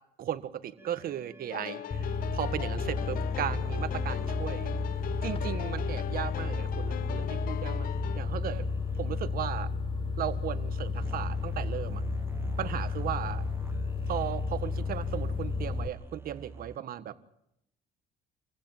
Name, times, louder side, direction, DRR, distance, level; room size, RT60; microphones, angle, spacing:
voice 1, 0.2-4.7 5.2-8.6 8.9-9.7 10.2-12.0 12.6-13.4 14.1-17.1, right 11 dB, 60° right, 11 dB, 1.6 m, -36 dB
sound 1, 0.8-16.8, right 4 dB, 15° right, 0.9 m, -46 dB
sound 2, 1.5-8.2, left 11 dB, 60° left, 0.8 m, -39 dB
sound 3, 1.9-15.9, left 4 dB, 30° left, 1.4 m, -32 dB
27.0 x 16.0 x 7.4 m, 0.79 s
cardioid pair, 110°, 17 cm